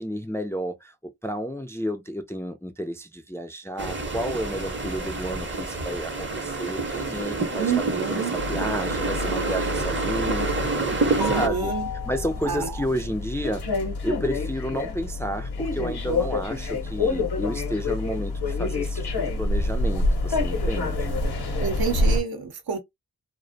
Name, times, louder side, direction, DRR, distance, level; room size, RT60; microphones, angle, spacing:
voice 1, 0.0-10.9 11.3-11.7 12.1-13.6 14.0-21.1, equal, 5° left, 0.3 m, -31 dB
sound 1, 3.8-11.5, right 3 dB, 30° right, 0.7 m, -28 dB
voice 2, 7.6-8.3 11.1-11.9 12.4-12.7 21.6-22.8, right 6 dB, 70° right, 0.7 m, -28 dB
sound 2, 8.4-22.2, left 2 dB, 80° left, 0.7 m, -27 dB
2.4 x 2.0 x 2.5 m
cardioid pair, 50°, 38 cm